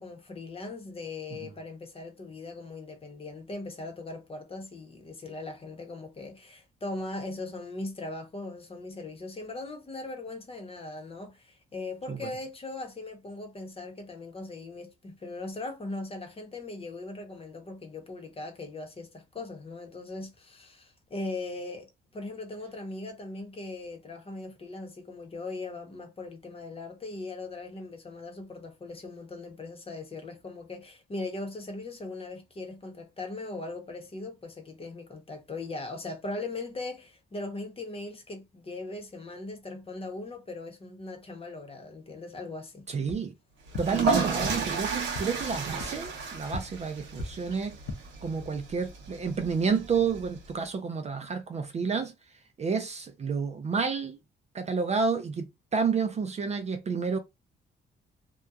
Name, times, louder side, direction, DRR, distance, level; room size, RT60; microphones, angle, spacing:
voice 1, 0.0-21.9 22.1-42.9, left 2 dB, 30° left, 0.9 m, -39 dB
voice 2, 42.9-43.3 43.8-47.8 48.2-52.1 52.6-54.2 54.5-57.2, right 5 dB, 35° right, 0.4 m, -30 dB
sound 1, 43.0-43.2 43.7-43.8 44.4-44.5 45.1-45.2 45.8-45.9 46.5-46.6 47.1-47.3 47.7-48.0, left 2 dB, 90° left, 0.6 m, -35 dB
sound 2, 43.7-50.5, right 4 dB, 75° right, 0.9 m, -33 dB
2.8 x 2.2 x 2.3 m
cardioid pair, 90°, 20 cm